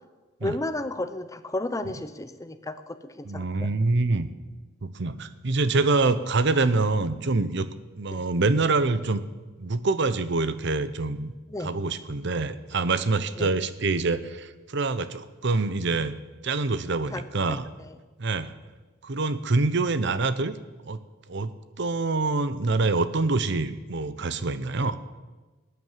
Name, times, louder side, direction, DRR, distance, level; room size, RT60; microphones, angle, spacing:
voice 1, 0.4-3.7 8.1-8.2 11.5-11.7 13.4-13.5 17.1-17.6 17.8-17.9, left 2 dB, 15° left, 11 dB, 0.7 m, -33 dB
voice 2, 3.2-4.3 4.8-7.7 8.0-9.2 9.6-11.3 11.6-16.2 16.4-17.6 18.2-18.5 19.0-20.5 20.9-21.0 21.3-25.0, right 3 dB, 60° right, 14 dB, 0.8 m, -25 dB
19.0 x 9.5 x 7.5 m, 1.3 s
head